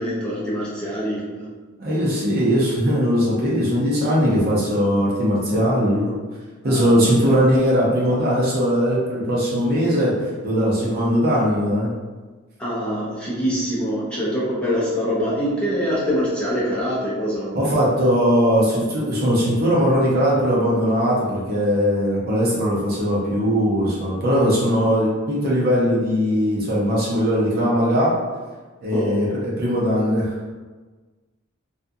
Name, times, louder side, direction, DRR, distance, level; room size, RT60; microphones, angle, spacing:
voice 1, 0.0-1.5 6.6-7.0 12.6-17.7 28.9-29.4, equal, 5° left, -9 dB, 0.6 m, -24 dB
voice 2, 1.8-6.1 6.6-11.9 17.5-28.2 28.8-30.3, equal, 45° right, -6 dB, 0.7 m, -20 dB
2.5 x 2.3 x 2.6 m, 1.3 s
head